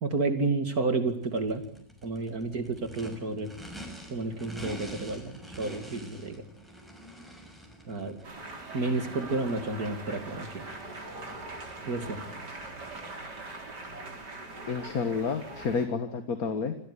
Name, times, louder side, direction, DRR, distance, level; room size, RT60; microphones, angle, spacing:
voice 1, 0.0-1.6 2.0-3.5 4.1-6.4 7.9-8.2 8.7-10.6 11.9-12.2, right 3 dB, 60° right, 8 dB, 3.1 m, -30 dB
Race car auto racing / Idling / Accelerating revving vroom, 1.1-13.1, equal, ahead, 6.1 m, -47 dB
sound 1, 8.2-15.9, right 2 dB, 85° right, 4.5 m, -42 dB
voice 2, 14.7-16.8, left 5 dB, 60° left, 9 dB, 2.0 m, -30 dB
27.0 x 16.5 x 10.0 m, 0.66 s
omnidirectional pair, 1.8 m